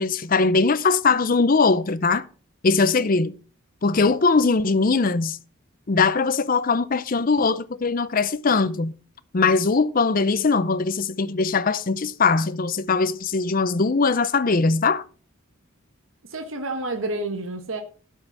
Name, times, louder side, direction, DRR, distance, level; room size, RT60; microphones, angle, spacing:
voice 1, 0.0-2.2 2.6-3.3 3.8-5.4 5.9-8.9 9.3-15.0, left 4 dB, 40° left, 0.5 m, -21 dB
voice 2, 16.3-17.8, right 2 dB, 75° right, 1.4 m, -29 dB
12.5 x 5.5 x 6.0 m
head